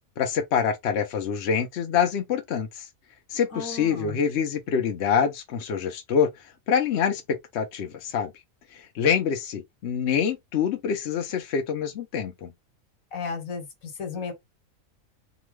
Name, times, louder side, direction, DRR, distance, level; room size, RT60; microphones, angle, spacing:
voice 1, 0.2-2.9 3.3-6.3 6.7-8.3 8.7-12.5, left 7 dB, 60° left, 0.8 m, -26 dB
voice 2, 3.5-4.2 13.1-14.3, left 5 dB, 75° left, 1.5 m, -34 dB
2.9 x 2.3 x 3.1 m
omnidirectional pair, 1.4 m